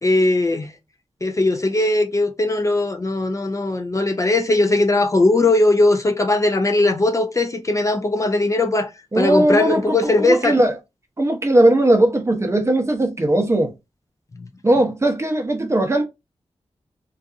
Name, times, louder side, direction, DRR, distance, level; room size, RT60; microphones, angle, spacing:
voice 1, 0.0-0.7 1.2-8.9 9.1-10.6 14.4-14.5, left 2 dB, 30° left, 0.4 m, -19 dB
voice 2, 9.1-10.7 11.2-13.7 14.6-16.0, right 1 dB, 25° right, 0.7 m, -18 dB
2.6 x 2.4 x 2.4 m
wide cardioid pair, 80°, 12 cm